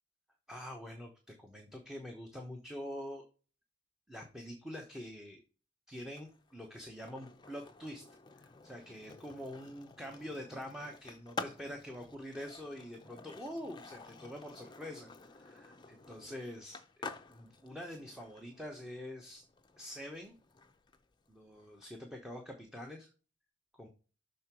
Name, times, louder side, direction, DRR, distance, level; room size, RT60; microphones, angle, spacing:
voice 1, 0.5-3.2 4.1-5.4 5.9-8.0 8.4-19.4 19.8-20.4 21.3-23.1 23.7-23.9, equal, 5° right, 2 dB, 0.9 m, -45 dB
Skateboard, 6.0-21.9, left 4 dB, 20° left, 0.5 m, -50 dB
6.4 x 3.8 x 5.8 m, 0.36 s
head